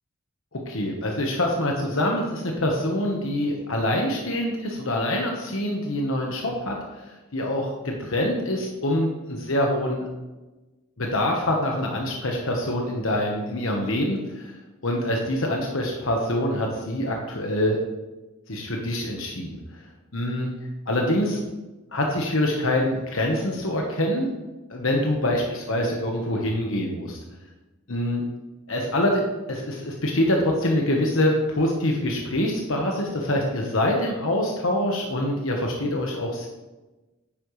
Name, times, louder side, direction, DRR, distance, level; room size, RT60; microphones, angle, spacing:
voice 1, 0.5-10.1 11.0-14.5 14.8-17.8 18.5-19.6 20.1-20.5 20.9-21.4 21.9-24.3 24.7-27.2 27.9-28.2 28.7-29.2 29.5-36.5, left 1 dB, 65° left, 0 dB, 1.2 m, -25 dB
10.5 x 8.8 x 3.2 m, 1.1 s
head